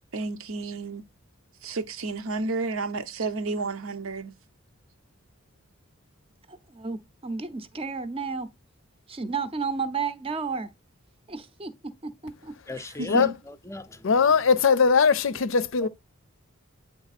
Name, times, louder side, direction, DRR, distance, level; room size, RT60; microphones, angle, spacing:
voice 1, 0.1-1.0 1.6-4.3 13.0-13.4, right 3 dB, 75° right, 0.8 m, -31 dB
voice 2, 6.5-8.5 9.1-10.7 11.3-11.7 12.0-12.5, right 5 dB, 25° right, 0.6 m, -32 dB
voice 3, 12.7-14.5 15.8-15.9, left 2 dB, 15° left, 0.5 m, -39 dB
voice 4, 14.0-15.9, left 5 dB, 65° left, 0.5 m, -20 dB
8.7 x 3.5 x 4.1 m
head